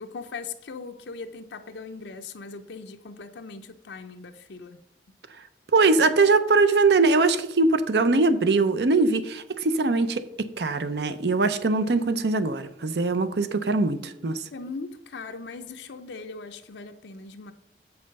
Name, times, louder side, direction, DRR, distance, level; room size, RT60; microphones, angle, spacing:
voice 1, 0.0-4.8 14.0-17.5, left 4 dB, 85° left, 0.6 m, -40 dB
voice 2, 5.7-14.4, right 3 dB, 70° right, 0.6 m, -22 dB
7.7 x 5.6 x 5.3 m
head